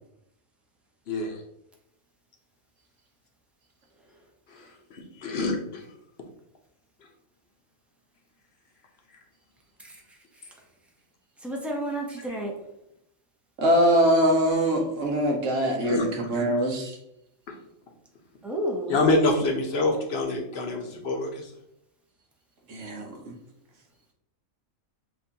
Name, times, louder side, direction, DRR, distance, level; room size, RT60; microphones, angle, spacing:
voice 1, 1.1-1.4 4.5-5.9 12.3-12.4 15.8-16.1 17.5-17.6 18.9-21.5, left 2 dB, 55° left, 2 dB, 1.0 m, -26 dB
voice 2, 11.4-12.5 18.4-19.0, right 1 dB, ahead, 0 dB, 0.4 m, -31 dB
voice 3, 13.6-17.0 22.7-23.3, equal, 70° right, 2 dB, 1.3 m, -23 dB
7.5 x 2.6 x 2.8 m, 0.79 s
omnidirectional pair, 1.4 m